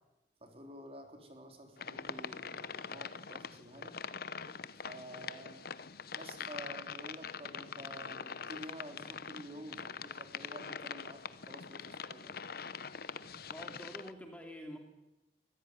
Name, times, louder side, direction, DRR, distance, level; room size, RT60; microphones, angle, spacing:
voice 1, 0.4-4.0 4.8-5.7 6.1-12.5, right 1 dB, 35° right, 4 dB, 3.7 m, -50 dB
sound 1, 1.8-14.1, left 6 dB, 60° left, 0.9 m, -44 dB
voice 2, 13.2-14.8, equal, 10° left, 3 dB, 2.8 m, -48 dB
24.0 x 15.5 x 9.7 m, 0.98 s
head